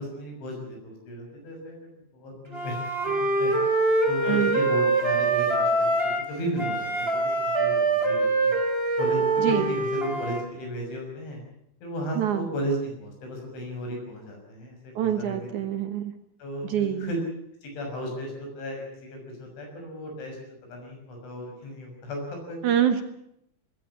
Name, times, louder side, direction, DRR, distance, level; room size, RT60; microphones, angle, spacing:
voice 1, 0.0-1.9 2.1-2.8 3.1-3.6 4.1-5.9 6.3-8.6 9.0-11.4 11.8-15.5 16.4-17.2 17.6-20.4 20.7-22.6, equal, 85° left, 2 dB, 8.9 m, -34 dB
Wind instrument woodwind instrument, 2.5-6.3 6.6-10.4, right 2 dB, 15° right, 3.1 m, -24 dB
voice 2, 4.2-4.6 9.4-9.7 12.2-12.5 15.0-16.1 16.6-17.1 22.6-23.0, right 10 dB, 75° right, 9 dB, 1.8 m, -25 dB
20.0 x 16.5 x 9.9 m, 0.76 s
omnidirectional pair, 5.3 m